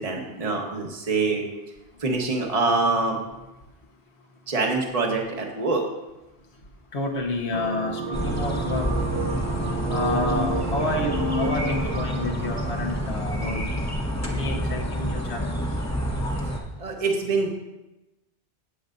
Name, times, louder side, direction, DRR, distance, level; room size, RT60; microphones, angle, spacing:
voice 1, 0.0-1.4 2.0-3.2 4.5-5.8 8.1-9.5 9.8-11.9 16.8-17.5, right 3 dB, 30° right, 0 dB, 1.3 m, -26 dB
voice 2, 6.9-8.9 9.9-13.7 14.3-15.6, left 2 dB, 65° left, 1 dB, 1.6 m, -29 dB
sound 1, 7.5-13.1, right 6 dB, 50° right, 0.5 m, -35 dB
sound 2, 8.1-16.6, equal, 15° left, 1.1 m, -28 dB
18.0 x 7.1 x 2.6 m, 0.99 s
omnidirectional pair, 1.2 m